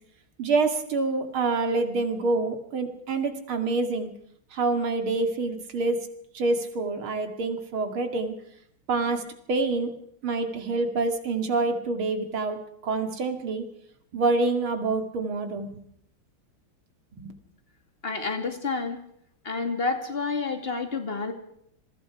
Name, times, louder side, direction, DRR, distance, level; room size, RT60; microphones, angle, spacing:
voice 1, 0.4-4.1 4.5-6.1 6.3-8.3 8.9-9.9 10.2-13.6 14.1-15.8 17.2-17.3, right 3 dB, 80° right, 7 dB, 3.1 m, -27 dB
voice 2, 18.0-19.0 19.4-21.3, left 4 dB, 30° left, 6 dB, 2.7 m, -29 dB
27.5 x 21.5 x 4.9 m, 0.70 s
omnidirectional pair, 2.3 m